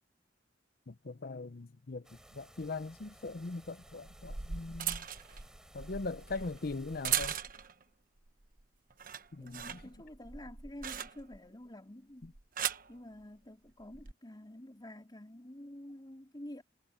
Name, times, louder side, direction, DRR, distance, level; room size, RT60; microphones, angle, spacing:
voice 1, 0.9-2.1 2.3-5.0 5.7-7.3 9.3-9.8 12.2-12.3, left 3 dB, 55° left, 0.7 m, -40 dB
sound 1, 2.0-7.4, equal, 5° right, 5.7 m, -59 dB
sound 2, 2.6-2.7 3.9-7.8 8.3-8.6 8.9-11.5 12.2-12.9 13.8-14.1, right 9 dB, 50° right, 1.1 m, -39 dB
voice 2, 9.4-12.3 12.9-16.6, left 1 dB, 25° left, 3.7 m, -49 dB
head